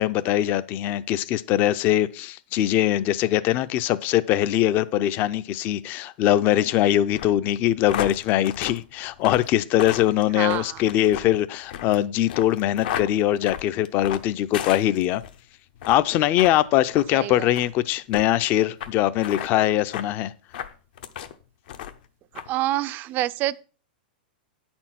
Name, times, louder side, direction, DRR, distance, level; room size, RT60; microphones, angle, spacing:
voice 1, 0.0-15.2 15.9-20.3, left 13 dB, 40° left, 0.5 m, -22 dB
sound 1, 7.1-15.4 15.7-16.0 16.4-16.5 16.9-17.1 17.5-17.7 18.1-18.2 18.8-18.9 19.2-19.5 19.9-20.1 20.5-21.3 21.7-22.0 22.3-22.5, left 10 dB, 70° left, 0.8 m, -34 dB
voice 2, 22.5-23.6, right 15 dB, 35° right, 0.4 m, -26 dB
8.8 x 4.4 x 5.8 m
hypercardioid pair, 135°, 5 cm